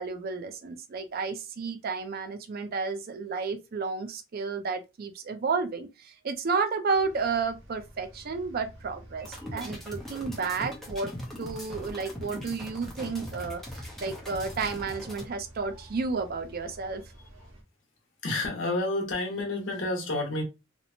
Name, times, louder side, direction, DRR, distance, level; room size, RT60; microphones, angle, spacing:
voice 1, 0.0-11.1 11.4-17.0, right 4 dB, 50° right, 0.4 m, -32 dB
sound 1, 6.9-17.6, right 1 dB, 80° right, 1.0 m, -51 dB
sound 2, 9.2-15.2, left 1 dB, ahead, 0.7 m, -40 dB
voice 2, 18.2-20.4, left 2 dB, 65° left, 0.9 m, -29 dB
2.9 x 2.0 x 2.6 m
head